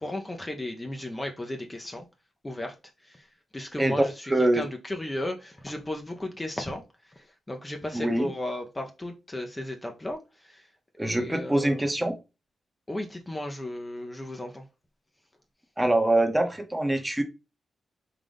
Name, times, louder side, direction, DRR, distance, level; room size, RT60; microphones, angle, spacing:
voice 1, 0.0-2.1 2.4-2.7 3.0-3.3 3.5-10.7 11.0-11.8 12.9-14.6, left 1 dB, 20° left, 0.7 m, -35 dB
voice 2, 4.3-4.6 7.9-8.3 11.0-12.2 15.8-17.2, right 1 dB, 15° right, 0.9 m, -24 dB
3.8 x 2.5 x 3.5 m
cardioid pair, 55°, 0 cm